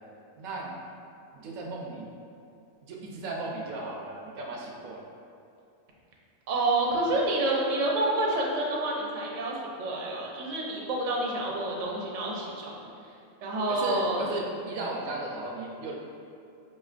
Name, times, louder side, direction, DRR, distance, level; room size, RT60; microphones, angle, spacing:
voice 1, 0.4-0.8 1.3-2.1 2.8-5.0 13.7-15.9, right 2 dB, 85° right, -1 dB, 1.1 m, -36 dB
voice 2, 6.5-12.9 13.4-14.2, right 2 dB, 50° right, -3 dB, 0.5 m, -28 dB
4.9 x 3.1 x 2.4 m, 2.5 s
omnidirectional pair, 1.4 m